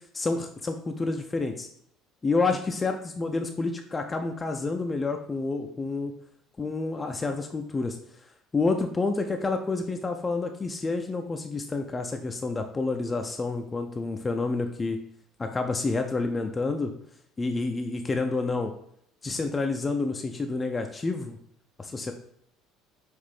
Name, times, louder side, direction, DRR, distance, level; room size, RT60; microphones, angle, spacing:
voice 1, 0.1-1.7 2.2-6.1 6.6-8.0 8.5-15.0 15.4-16.9 17.4-18.7 19.2-21.4 21.8-22.1, left 3 dB, 20° left, 4 dB, 0.4 m, -29 dB
5.8 x 2.6 x 3.3 m, 0.70 s
figure-of-eight pair, 60°, 0 cm